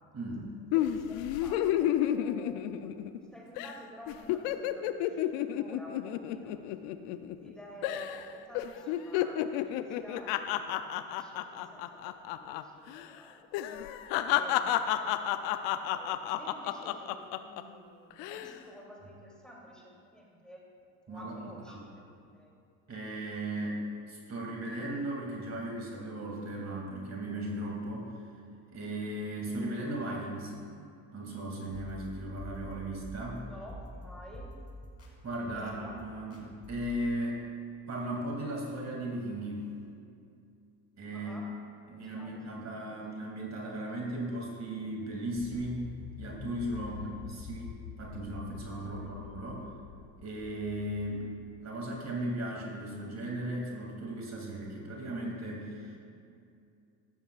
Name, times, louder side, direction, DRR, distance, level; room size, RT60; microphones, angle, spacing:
voice 1, 0.1-0.5 21.1-21.8 22.9-28.1 28.7-30.5 31.1-33.5 35.2-37.5 37.9-39.7 41.0-41.3 41.9-45.9 46.2-47.7 48.0-49.6 50.2-51.2 51.6-56.0, right 1 dB, 40° right, -2 dB, 2.6 m, -37 dB
sound 1, 0.7-3.2 3.6-3.8 4.1-7.5 7.8-8.2 8.5-12.6 12.9-13.1 13.5-17.6 18.1-18.5, left 12 dB, 75° left, 0.6 m, -31 dB
voice 2, 0.7-3.0 3.3-6.6 7.4-13.4 14.1-15.1 15.9-20.7 21.1-22.5 33.4-34.5 35.5-36.3 41.1-41.6 41.9-43.0 46.8-47.2 48.8-49.2, equal, ahead, -3 dB, 2.9 m, -51 dB
sound 2, 31.7-37.0, equal, 35° left, 2.7 m, -47 dB
sound 3, 45.3-51.6, left 8 dB, 55° left, 1.0 m, -46 dB
14.0 x 12.5 x 2.4 m, 2.5 s
supercardioid pair, 75°, 42 cm